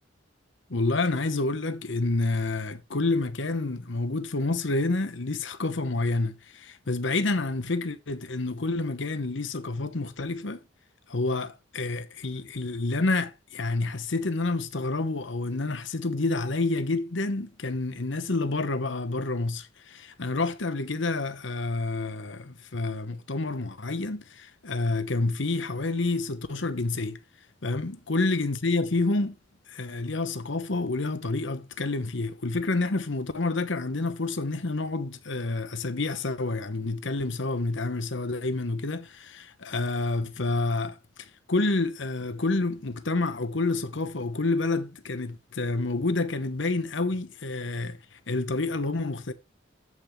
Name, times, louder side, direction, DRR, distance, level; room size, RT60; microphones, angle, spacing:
voice 1, 0.7-10.6 11.1-27.2 27.6-29.4 29.7-49.3, left 2 dB, 65° left, 1.0 m, -28 dB
14.0 x 5.8 x 3.2 m
head